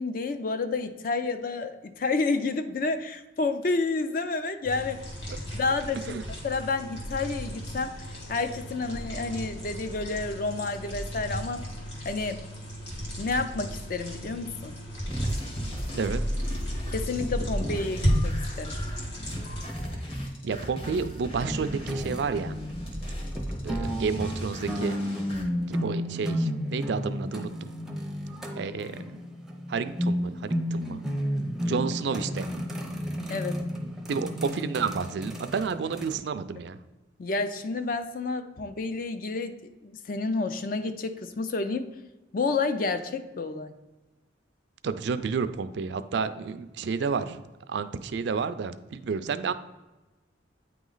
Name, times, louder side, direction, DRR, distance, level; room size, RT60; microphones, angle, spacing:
voice 1, 0.0-5.0 5.5-6.2 6.4-11.6 12.0-12.4 13.2-14.8 16.9-18.8 33.3-33.6 37.2-39.6 39.8-41.9 42.3-43.7, left 3 dB, 45° left, 9 dB, 0.4 m, -30 dB
sound 1, 4.6-19.6, equal, 70° left, 1.9 m, -35 dB
sound 2, 15.1-25.4, equal, 30° left, 1.1 m, -35 dB
voice 2, 20.4-22.6 23.6-25.0 25.7-27.7 28.5-29.2 29.7-31.0 31.7-32.5 34.1-36.8 44.8-47.4 47.7-49.5, right 5 dB, 65° right, 12 dB, 0.4 m, -30 dB
sound 3, 21.4-36.2, equal, ahead, 0.5 m, -32 dB
9.0 x 3.1 x 3.9 m, 1.1 s
head